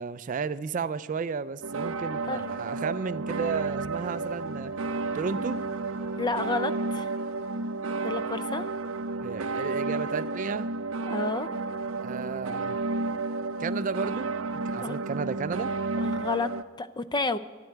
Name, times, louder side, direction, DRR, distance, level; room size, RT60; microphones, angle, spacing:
voice 1, 0.0-4.7 5.1-5.6 9.2-10.7 11.9-12.8 13.6-14.3 14.7-15.7, right 5 dB, 40° right, 16 dB, 0.3 m, -33 dB
sound 1, 1.6-16.6, right 3 dB, 85° right, 0.6 m, -32 dB
sound 2, 3.8-9.4 9.7-9.8, left 2 dB, 70° left, 2.6 m, -53 dB
voice 2, 6.2-7.1 8.0-8.7 11.1-11.5 14.8-15.0 16.0-17.4, left 3 dB, 20° left, 13 dB, 0.5 m, -30 dB
11.5 x 7.8 x 9.5 m, 1.4 s
head